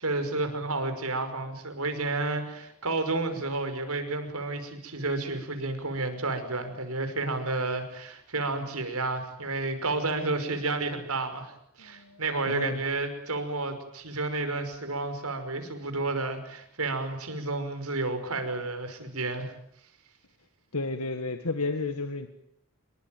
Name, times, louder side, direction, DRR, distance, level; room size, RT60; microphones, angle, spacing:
voice 1, 0.0-11.5 11.8-19.5, right 3 dB, 85° right, 8 dB, 5.7 m, -31 dB
voice 2, 11.8-12.2 12.5-12.8 20.7-22.3, left 3 dB, 85° left, 8 dB, 1.9 m, -31 dB
27.0 x 22.5 x 9.3 m, 0.70 s
head